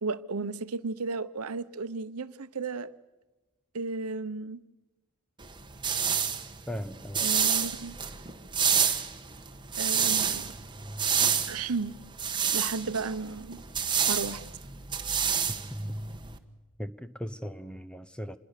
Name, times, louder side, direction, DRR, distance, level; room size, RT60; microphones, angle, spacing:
voice 1, 0.0-2.9 3.7-4.6 7.2-8.0 9.8-10.5 11.5-12.0 12.5-13.6 14.1-14.4, right 4 dB, 75° right, 0.8 m, -34 dB
sound 1, 5.4-16.4, right 7 dB, 20° right, 1.3 m, -29 dB
voice 2, 6.7-7.3 16.8-18.4, equal, 5° left, 0.7 m, -38 dB
27.0 x 21.5 x 6.7 m
head